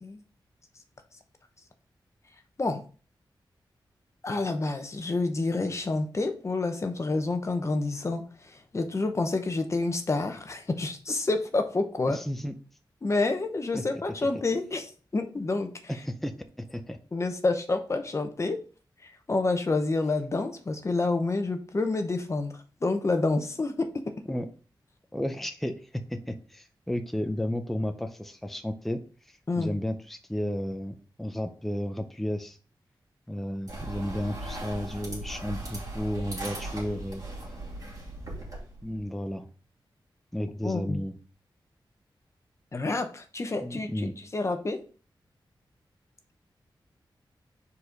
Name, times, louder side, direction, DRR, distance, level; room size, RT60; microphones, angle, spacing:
voice 1, 4.2-12.2 13.0-15.7 17.1-18.6 19.0-23.9 29.5-29.8 40.6-41.0 42.7-44.8, left 3 dB, 35° left, 6 dB, 0.9 m, -28 dB
voice 2, 12.1-12.5 13.7-13.8 15.9-17.0 24.3-24.5 25.1-29.0 29.6-32.6 33.3-37.2 38.8-39.5 40.3-41.2 43.6-44.1, left 1 dB, ahead, 7 dB, 0.5 m, -33 dB
sound 1, 33.7-39.0, right 2 dB, 45° right, 2.6 m, -38 dB
4.9 x 4.1 x 5.1 m, 0.38 s
wide cardioid pair, 140°, 8 cm